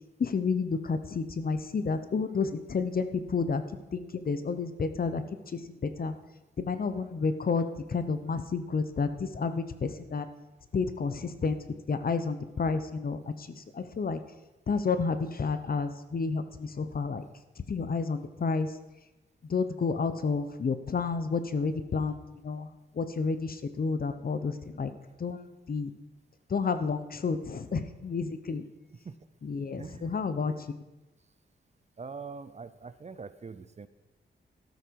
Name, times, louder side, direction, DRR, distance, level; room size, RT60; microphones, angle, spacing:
voice 1, 0.2-3.6 3.9-5.2 5.5-5.6 6.0-6.1 6.6-10.3 10.7-11.6 11.9-14.2 14.7-17.2 17.7-18.7 19.5-24.9 25.2-25.4 25.7-25.9 26.5-28.6 29.4-30.5, left 4 dB, 50° left, 10 dB, 1.0 m, -30 dB
voice 2, 29.8-30.1 30.5-30.6 32.0-33.9, right 5 dB, 35° right, 13 dB, 0.6 m, -43 dB
13.5 x 12.5 x 4.7 m, 1.0 s
wide cardioid pair, 105°, 20 cm